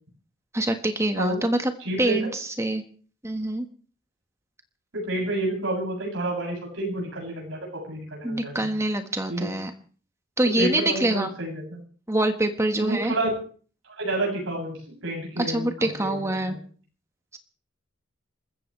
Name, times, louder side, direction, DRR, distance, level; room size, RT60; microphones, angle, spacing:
voice 1, 0.5-1.7 2.0-2.8 3.2-3.7 8.2-9.7 10.4-11.3 12.1-13.1 15.4-16.6, right 1 dB, 15° right, 6 dB, 1.5 m, -25 dB
voice 2, 1.8-2.2 4.9-8.7 9.3-9.5 10.6-11.8 12.8-13.3 14.0-16.6, right 1 dB, 80° right, -2 dB, 7.9 m, -29 dB
28.0 x 14.5 x 3.3 m, 0.43 s
head